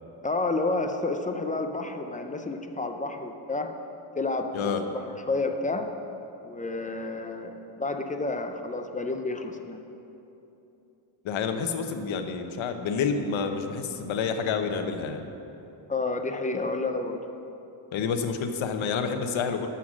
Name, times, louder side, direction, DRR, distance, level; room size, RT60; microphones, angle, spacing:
voice 1, 0.2-3.7 4.2-4.5 4.9-5.0 5.3-5.9 6.4-9.8 15.9-17.2, left 3 dB, 15° left, 5 dB, 0.4 m, -30 dB
voice 2, 11.2-15.3 17.9-19.7, left 5 dB, 70° left, 6 dB, 1.0 m, -28 dB
12.5 x 5.8 x 6.2 m, 3.0 s
cardioid pair, 155°, 50 cm